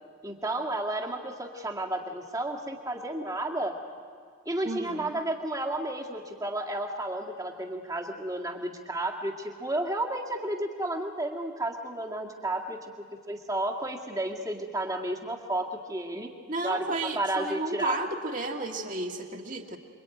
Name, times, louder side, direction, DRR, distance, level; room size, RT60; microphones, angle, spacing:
voice 1, 0.2-3.7 4.5-12.9 13.3-16.3 16.6-16.8 17.2-18.0, right 1 dB, 15° right, 1 dB, 2.0 m, -32 dB
voice 2, 4.6-5.1 16.5-19.8, right 2 dB, 40° right, 2 dB, 2.2 m, -32 dB
27.5 x 23.5 x 9.2 m, 2.1 s
head